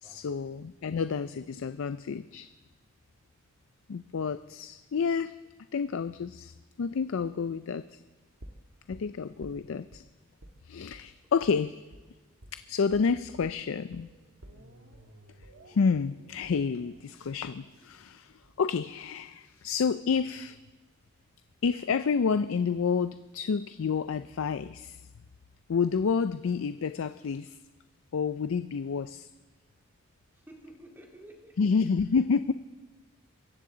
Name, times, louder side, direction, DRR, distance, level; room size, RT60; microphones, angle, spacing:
voice 1, 0.0-2.5 3.9-5.3 5.7-6.5 6.8-7.8 8.9-10.0 10.7-11.8 12.5-14.1 15.7-20.6 21.6-25.0 25.7-27.6 28.1-29.3 31.6-32.5, left 5 dB, 80° left, 12 dB, 0.4 m, -29 dB
sound 1, 8.4-10.0 10.4-10.6 10.9-11.1 11.4-11.6 11.9-12.1 12.4-12.6 12.9-13.1 13.4-19.4 19.7-19.8, right 1 dB, 80° right, 1.4 m, -53 dB
voice 2, 30.3-31.6, right 1 dB, 10° right, 0 dB, 2.2 m, -51 dB
23.0 x 15.5 x 3.9 m, 1.2 s
head